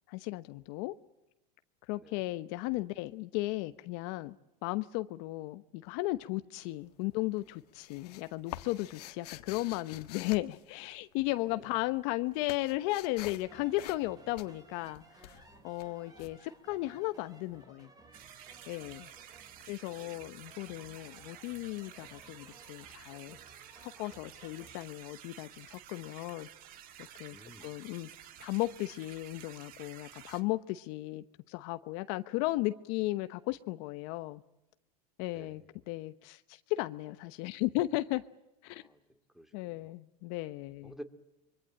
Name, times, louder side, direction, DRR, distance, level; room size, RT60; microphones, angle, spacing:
voice 1, 0.1-0.9 1.9-4.3 4.6-17.9 18.7-19.1 19.6-23.4 23.8-26.5 27.2-28.1 28.4-34.4 35.2-38.2 38.6-38.8 39.5-40.9, left 19 dB, 60° left, 11 dB, 1.0 m, -35 dB
sound 1, 6.5-7.1 7.4-11.4 11.7-17.3, left 14 dB, 80° left, 1.7 m, -47 dB
voice 2, 11.4-11.8 16.0-16.3 19.6-20.3 27.3-27.7 35.3-35.6 38.7-39.9 40.8-41.0, equal, ahead, 8 dB, 2.6 m, -53 dB
sound 2, 13.4-24.8, right 3 dB, 20° right, 3.9 m, -58 dB
sound 3, 18.1-30.4, right 11 dB, 45° right, 1.9 m, -52 dB
25.5 x 24.0 x 8.9 m, 0.92 s
supercardioid pair, 125°, 20 cm